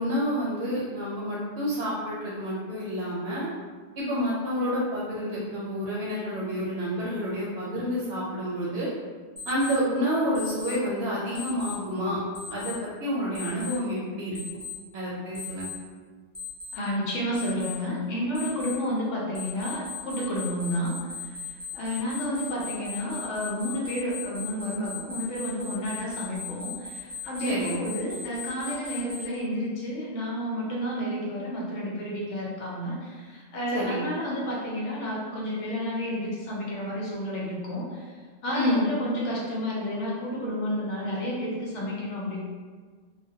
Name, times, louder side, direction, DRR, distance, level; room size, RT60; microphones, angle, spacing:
voice 1, 0.0-3.5 4.0-8.9 9.5-12.2 12.5-14.4 14.9-15.7 27.4-27.7 33.7-34.0 38.5-38.9, equal, 70° right, -6 dB, 0.8 m, -29 dB
Alarm, 9.4-9.7 10.3-10.7 11.3-11.7 12.3-12.7 13.3-13.7 14.3-14.7 15.3-15.7 16.3-16.7 17.3-17.7 18.3-18.7 19.3-29.2, left 5 dB, 20° left, 0.7 m, -38 dB
voice 2, 16.7-20.9 21.2-38.1 38.4-42.4, equal, 80° left, -4 dB, 0.9 m, -31 dB
2.2 x 2.1 x 2.6 m, 1.5 s
omnidirectional pair, 1.2 m